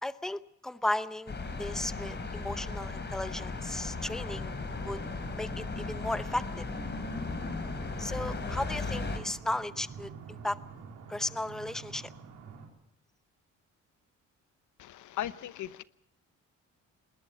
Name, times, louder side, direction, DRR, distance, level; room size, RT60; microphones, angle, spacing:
voice 1, 0.0-4.5 4.8-5.0 5.3-6.7 8.0-10.6 11.1-12.1, left 1 dB, ahead, 13 dB, 0.8 m, -35 dB
sound 1, 1.3-9.2, left 3 dB, 35° left, 3.8 m, -36 dB
sound 2, 4.8-12.7, right 6 dB, 90° right, 4.2 m, -48 dB
voice 2, 14.8-15.8, left 12 dB, 75° left, 15 dB, 0.9 m, -37 dB
20.5 x 19.5 x 6.9 m, 0.75 s
cardioid pair, 90°, 30 cm